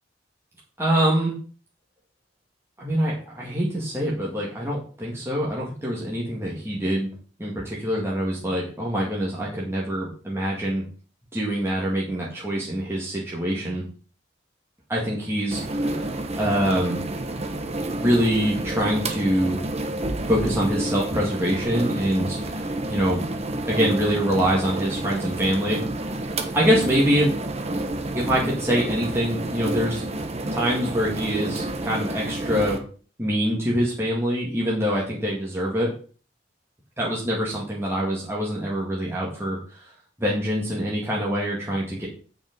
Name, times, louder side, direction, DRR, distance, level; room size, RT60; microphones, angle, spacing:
voice 1, 0.8-1.3 2.8-7.1 7.4-10.8 11.3-13.8 14.9-16.1 16.4-17.0 18.0-19.6 20.3-23.2 23.7-26.0 26.5-27.3 28.1-30.0 30.5-32.8 33.2-35.9 37.0-39.9 40.2-42.1, equal, 15° right, -5 dB, 2.0 m, -24 dB
sound 1, 15.5-32.8, right 1 dB, 35° right, 1.1 m, -29 dB
9.0 x 5.3 x 5.3 m, 0.40 s
head